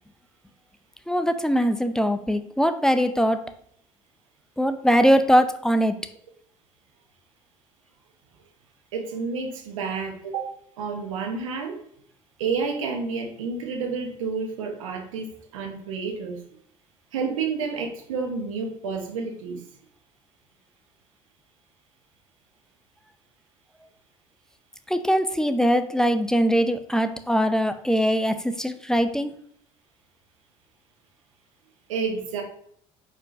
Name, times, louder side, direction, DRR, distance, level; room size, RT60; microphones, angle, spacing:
voice 1, 1.1-3.4 4.6-6.0 24.9-29.3, equal, 5° left, 9 dB, 0.5 m, -21 dB
voice 2, 8.9-10.5 10.8-11.8 12.4-15.3 15.5-16.4 17.1-19.6 31.9-32.4, right 5 dB, 85° right, 3 dB, 0.9 m, -30 dB
4.9 x 4.5 x 2.4 m, 0.67 s
hypercardioid pair, 65°, 16 cm